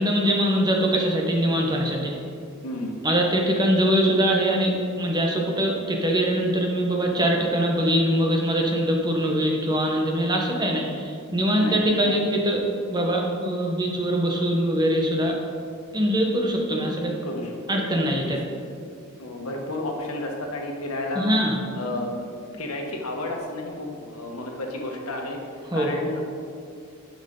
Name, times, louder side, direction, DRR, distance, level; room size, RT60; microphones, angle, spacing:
voice 1, 0.0-2.2 3.0-15.4 15.9-17.1 17.7-18.4 21.1-21.6 25.7-25.9, equal, 20° right, 0 dB, 1.0 m, -23 dB
voice 2, 2.6-3.0 11.5-12.1 17.2-17.6 18.0-18.1 19.2-21.3 21.7-25.4 25.7-26.2, left 2 dB, 90° left, 1 dB, 1.4 m, -32 dB
11.5 x 6.3 x 3.8 m, 2.3 s
head